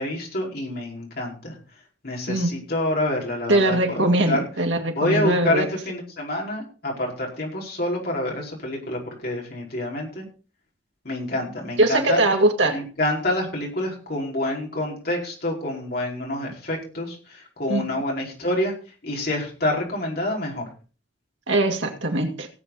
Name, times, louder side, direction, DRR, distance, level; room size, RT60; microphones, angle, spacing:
voice 1, 0.0-1.6 2.0-4.4 4.9-10.3 11.0-12.2 12.7-18.7 19.0-20.7, left 1 dB, 55° left, -2 dB, 5.0 m, -27 dB
voice 2, 3.5-5.7 11.8-12.8 17.7-17.9 21.5-22.5, right 1 dB, 80° right, 3 dB, 2.4 m, -21 dB
18.0 x 8.0 x 4.1 m, 0.36 s
head